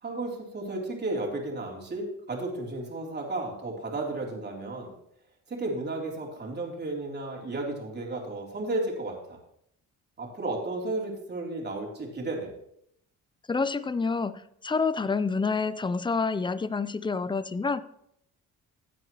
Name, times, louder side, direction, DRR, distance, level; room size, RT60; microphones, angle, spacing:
voice 1, 0.0-4.9 5.5-9.4 10.2-12.5, right 2 dB, 35° right, -2 dB, 3.5 m, -33 dB
voice 2, 13.5-17.8, left 4 dB, 15° left, 15 dB, 0.5 m, -28 dB
15.0 x 8.9 x 3.1 m, 0.74 s
cardioid pair, 90°, 30 cm